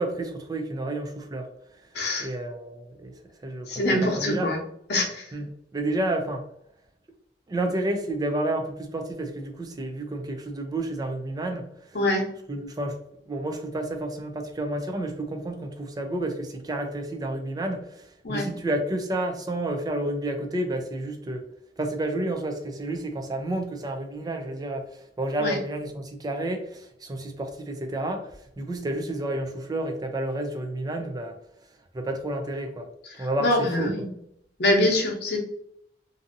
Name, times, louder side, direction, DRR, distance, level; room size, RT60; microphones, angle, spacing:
voice 1, 0.0-1.5 2.2-3.1 3.4-4.5 5.3-5.5 5.7-6.4 7.5-11.7 12.5-13.0 13.3-21.4 21.8-28.3 28.6-31.4 31.9-32.9 33.2-33.9, right 1 dB, 20° right, 5 dB, 0.4 m, -30 dB
voice 2, 1.9-2.3 3.7-4.6 4.9-5.3 11.9-12.3 18.2-18.5 25.4-25.6 33.2-34.1 34.6-35.4, left 1 dB, 65° left, 0 dB, 0.8 m, -24 dB
2.6 x 2.6 x 2.6 m, 0.71 s
head